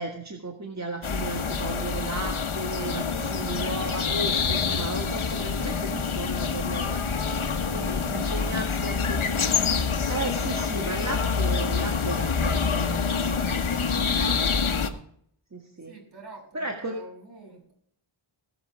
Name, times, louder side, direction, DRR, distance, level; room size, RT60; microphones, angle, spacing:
voice 1, 0.0-7.0 7.7-9.4 10.1-14.4 15.5-15.9 16.5-17.0, right 2 dB, 35° right, 2 dB, 1.7 m, -35 dB
sound 1, 1.0-14.9, left 5 dB, 80° left, 1.4 m, -26 dB
voice 2, 7.7-9.5 15.8-17.7, right 3 dB, 55° right, -2 dB, 6.9 m, -49 dB
20.0 x 6.8 x 4.7 m, 0.67 s
wide cardioid pair, 90°, 48 cm